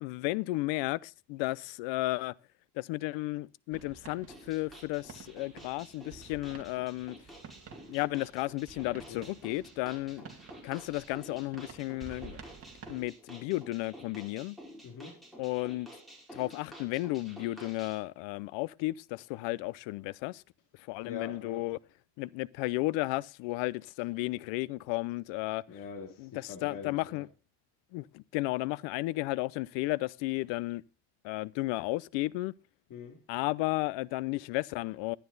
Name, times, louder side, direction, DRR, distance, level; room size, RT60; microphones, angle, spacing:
voice 1, 0.0-2.3 2.8-7.2 7.9-10.2 10.6-12.4 12.9-14.6 15.4-15.9 16.3-20.4 20.9-21.8 22.2-25.6 26.2-27.3 27.9-30.8 31.2-32.5 33.3-35.2, left 20 dB, 75° left, 0.6 m, -33 dB
sound 1, 3.7-13.1, right 5 dB, 30° right, 2.4 m, -52 dB
sound 2, 4.3-18.0, equal, ahead, 4.8 m, -51 dB
voice 2, 14.8-15.1 21.1-21.7 25.7-27.3 32.9-33.2, left 6 dB, 45° left, 2.5 m, -43 dB
12.0 x 10.0 x 3.9 m
cardioid pair, 135°, 45 cm